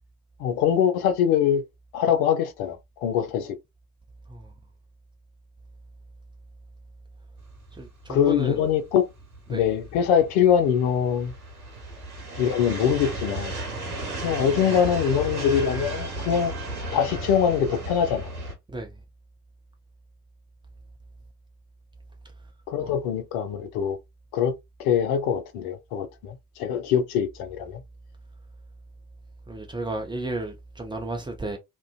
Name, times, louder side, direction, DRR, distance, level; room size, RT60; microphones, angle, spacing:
voice 1, 0.4-1.6 1.9-3.6 8.1-9.1 9.5-11.3 12.4-13.5 14.2-16.5 16.9-18.3 22.7-24.0 24.3-27.8, left 8 dB, 55° left, 0.6 m, -23 dB
sound 1, 7.6-18.5, right 2 dB, 75° right, 1.0 m, -34 dB
voice 2, 7.7-8.6 9.5-9.6 18.7-18.9 22.8-22.9 29.5-31.6, right 2 dB, 10° right, 0.6 m, -33 dB
2.5 x 2.2 x 2.3 m
figure-of-eight pair, 50°, 45 cm